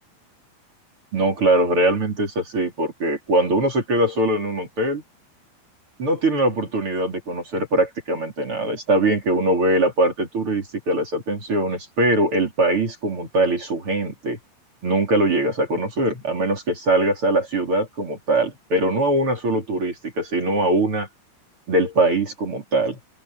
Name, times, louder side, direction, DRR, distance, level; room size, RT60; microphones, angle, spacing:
voice 1, 1.1-5.0 6.0-14.4 14.8-21.1 21.7-23.0, right 1 dB, 30° right, 3.9 m, -22 dB
open air
omnidirectional pair, 5.7 m